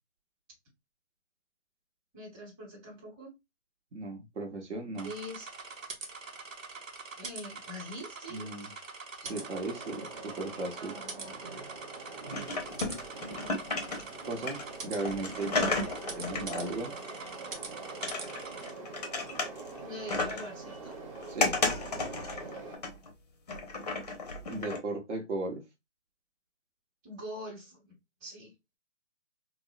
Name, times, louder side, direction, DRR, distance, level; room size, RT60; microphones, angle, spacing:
voice 1, 2.1-3.3 5.0-5.6 7.2-8.7 10.8-11.3 19.8-21.0 27.0-27.9 28.2-28.5, equal, 10° right, 1.0 m, -44 dB
voice 2, 3.9-5.1 8.3-8.7 9.2-10.9 14.2-15.8 16.2-16.9 21.3-21.6 24.5-25.6, right 2 dB, 60° right, 1.0 m, -36 dB
sound 1, 5.0-18.7, right 4 dB, 85° right, 0.9 m, -44 dB
Train, 9.2-22.8, right 3 dB, 25° right, 0.7 m, -45 dB
sound 2, 12.3-14.2 14.5-17.6 18.0-19.8 20.1-20.6 20.9-23.1 23.5-24.8, left 3 dB, 30° left, 0.5 m, -33 dB
3.5 x 2.0 x 2.5 m
hypercardioid pair, 155°, 39 cm